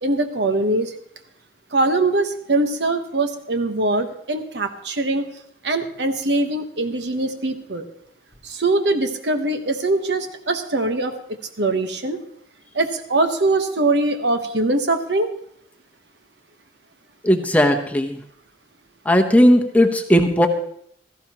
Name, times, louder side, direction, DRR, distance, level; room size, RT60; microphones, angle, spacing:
voice 1, 0.0-0.9 1.7-5.2 5.6-7.9 8.4-11.1 11.6-12.2 12.7-15.3, right 2 dB, 75° right, 7 dB, 1.2 m, -22 dB
voice 2, 17.2-18.2 19.0-20.5, equal, 10° left, 3 dB, 0.8 m, -16 dB
16.5 x 14.0 x 3.0 m, 0.68 s
head